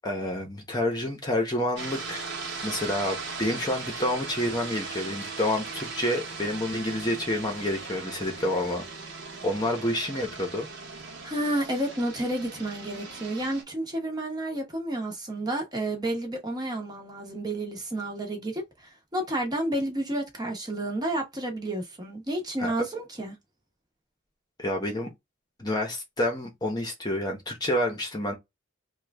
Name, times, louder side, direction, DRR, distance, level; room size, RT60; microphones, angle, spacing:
voice 1, 0.0-2.2 2.6-8.8 9.4-10.7 22.6-22.7 24.6-25.1 25.6-28.3, left 1 dB, 20° left, 0.8 m, -28 dB
sound 1, 1.8-13.6, right 4 dB, 55° right, 1.1 m, -38 dB
voice 2, 11.2-18.6 19.1-23.4, right 1 dB, 20° right, 0.9 m, -30 dB
3.0 x 2.3 x 3.4 m
head